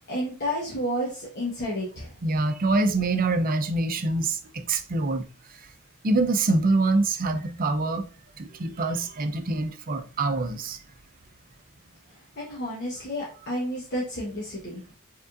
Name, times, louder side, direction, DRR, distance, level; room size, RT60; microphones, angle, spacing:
voice 1, 0.1-2.1 12.1-14.8, equal, 55° left, 1.3 m, -31 dB
voice 2, 2.2-5.2 6.0-8.0 8.4-10.8, right 2 dB, 40° right, 0.6 m, -25 dB
5.0 x 3.7 x 2.5 m
head